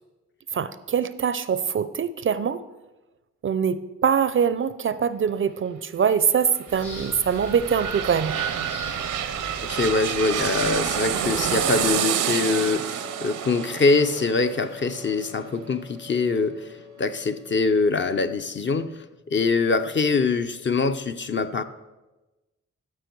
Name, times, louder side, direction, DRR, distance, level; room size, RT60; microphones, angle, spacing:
voice 1, 0.5-2.6 3.4-8.4, right 7 dB, 45° right, 15 dB, 0.4 m, -23 dB
sound 1, 6.5-16.1 16.5-16.6, right 9 dB, 85° right, 0.6 m, -29 dB
sound 2, 6.7-11.9, left 1 dB, 75° left, 3.2 m, -40 dB
voice 2, 9.7-21.6, left 4 dB, 40° left, 9 dB, 0.6 m, -24 dB
Wind instrument woodwind instrument, 12.9-18.0, left 1 dB, 60° left, 1.4 m, -47 dB
13.0 x 4.8 x 4.6 m, 1.1 s
cardioid pair, 60°, 30 cm